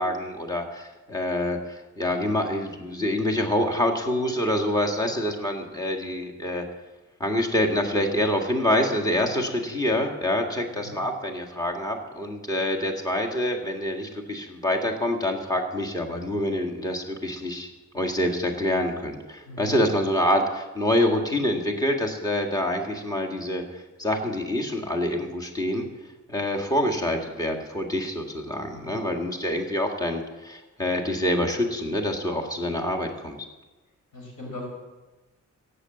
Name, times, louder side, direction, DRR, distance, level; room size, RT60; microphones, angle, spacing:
voice 1, 0.0-6.6 7.2-17.7 17.9-25.9 26.3-33.4, left 1 dB, 10° left, 1 dB, 1.8 m, -26 dB
voice 2, 19.5-19.9 28.7-29.0 34.1-34.7, left 2 dB, 85° left, 0 dB, 5.5 m, -39 dB
16.5 x 8.4 x 7.8 m, 1.2 s
wide cardioid pair, 135°, 32 cm